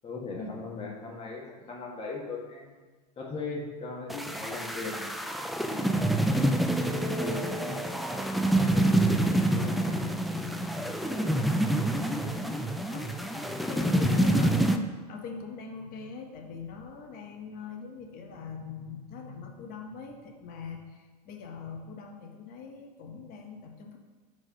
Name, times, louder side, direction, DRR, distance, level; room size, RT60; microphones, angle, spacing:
voice 1, 0.0-2.7 3.2-5.1 5.7-6.7 7.0-7.4 8.5-9.1 9.4-11.6, left 3 dB, 25° left, -1 dB, 1.6 m, -39 dB
sound 1, 4.1-14.8, right 1 dB, ahead, 0.4 m, -27 dB
voice 2, 12.9-24.0, left 5 dB, 45° left, 3 dB, 1.2 m, -42 dB
4.8 x 4.4 x 5.6 m, 1.4 s
hypercardioid pair, 100°, 21 cm